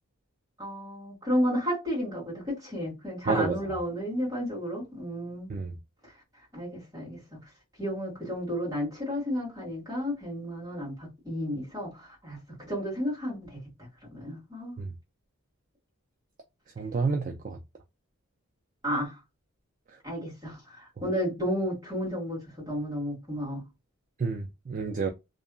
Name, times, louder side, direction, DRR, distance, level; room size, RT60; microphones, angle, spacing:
voice 1, 0.6-5.5 6.0-6.1 6.5-7.4 7.8-14.8 18.8-19.2 20.0-23.6, equal, 15° right, 1.7 m, -32 dB
voice 2, 16.8-17.6 24.2-25.1, right 4 dB, 35° right, 0.3 m, -29 dB
2.8 x 2.5 x 2.2 m
head